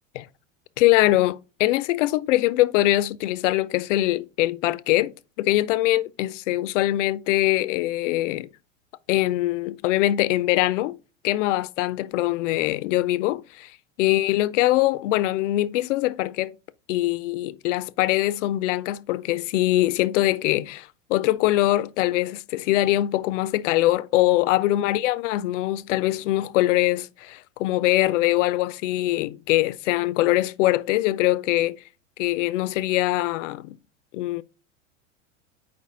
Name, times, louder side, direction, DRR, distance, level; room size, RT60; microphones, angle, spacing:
voice 1, 0.8-5.1 5.4-8.5 9.1-11.0 11.2-13.7 14.0-16.5 16.9-31.8 32.2-33.8 34.1-34.4, left 16 dB, 70° left, 0.6 m, -23 dB
4.8 x 4.3 x 4.7 m
hypercardioid pair, 110°, 38 cm